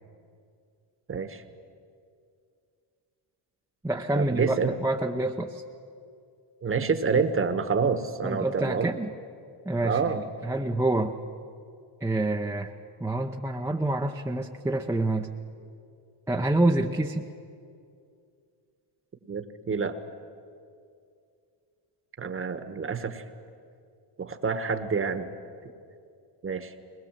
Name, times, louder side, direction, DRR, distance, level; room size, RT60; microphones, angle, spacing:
voice 1, 1.1-1.4 4.1-4.7 6.6-8.9 9.8-10.2 19.3-20.0 22.2-23.2 24.2-25.3 26.4-26.7, right 5 dB, 25° right, 10 dB, 1.2 m, -27 dB
voice 2, 3.8-5.6 8.2-9.1 9.6-11.1 12.0-12.7 13.0-15.3 16.3-17.3, right 2 dB, 5° right, 1 dB, 0.7 m, -27 dB
21.5 x 20.5 x 7.5 m, 2.4 s
cardioid pair, 120°, 49 cm